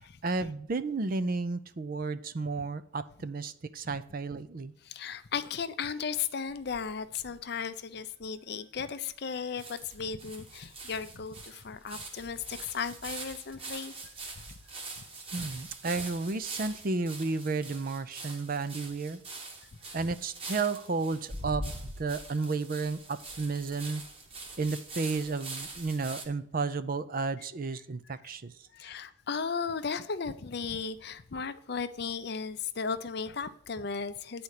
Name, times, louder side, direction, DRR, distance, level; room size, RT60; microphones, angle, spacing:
voice 1, 0.2-4.7 15.3-19.2 19.9-24.0 24.6-28.5, right 3 dB, 45° right, 0.5 m, -32 dB
voice 2, 4.8-13.9 19.9-20.0 28.7-34.4, left 6 dB, 50° left, 0.5 m, -35 dB
sound 1, 6.5-7.4 7.9-8.0 8.2-8.3 9.2-9.3 9.6-26.3, right 2 dB, 30° right, 1.2 m, -43 dB
9.4 x 4.3 x 6.5 m
head